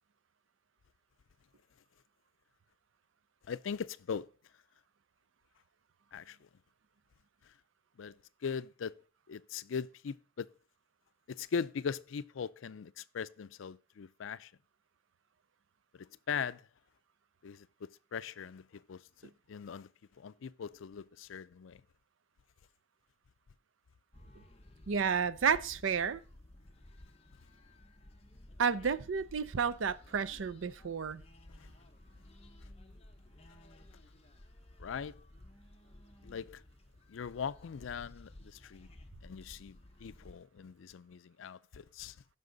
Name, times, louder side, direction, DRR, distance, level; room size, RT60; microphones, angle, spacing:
voice 1, 3.4-4.3 6.1-6.4 8.0-8.9 9.3-10.5 11.3-14.5 15.9-16.6 17.4-19.9 20.2-21.8 31.6-31.7 34.8-35.2 36.2-36.6 37.1-38.9 39.2-42.2, left 6 dB, 90° left, 0.4 m, -40 dB
sound 1, 24.1-40.3, left 1 dB, 30° left, 0.9 m, -55 dB
voice 2, 24.9-26.2 28.6-31.2, right 6 dB, 90° right, 0.5 m, -31 dB
14.5 x 5.7 x 3.9 m
head